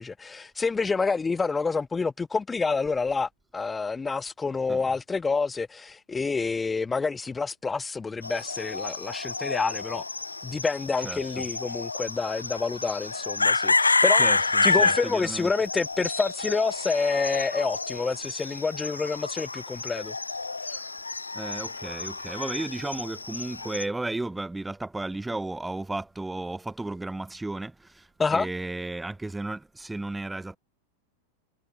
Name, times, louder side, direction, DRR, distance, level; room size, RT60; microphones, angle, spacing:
voice 1, 0.0-10.0 10.4-14.2 14.6-20.1 28.2-28.5, left 4 dB, 15° left, 0.3 m, -28 dB
sound 1, 8.2-23.8, left 3 dB, 80° left, 0.4 m, -29 dB
voice 2, 11.0-11.4 14.2-15.5 21.3-30.6, right 2 dB, 5° right, 1.5 m, -34 dB
figure-of-eight pair, 90°, 0 cm